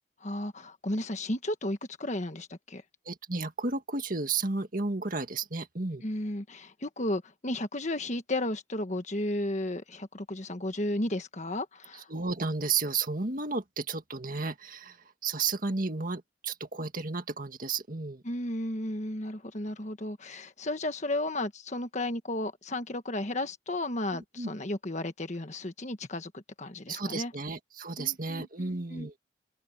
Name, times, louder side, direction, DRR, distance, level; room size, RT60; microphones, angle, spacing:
voice 1, 0.2-2.8 6.0-12.1 18.2-27.3 28.0-29.2, left 1 dB, 40° left, 1.5 m, -34 dB
voice 2, 3.1-6.0 12.1-15.0 15.2-18.2 24.1-24.5 26.9-29.1, right 4 dB, 45° right, 1.9 m, -33 dB
open air
head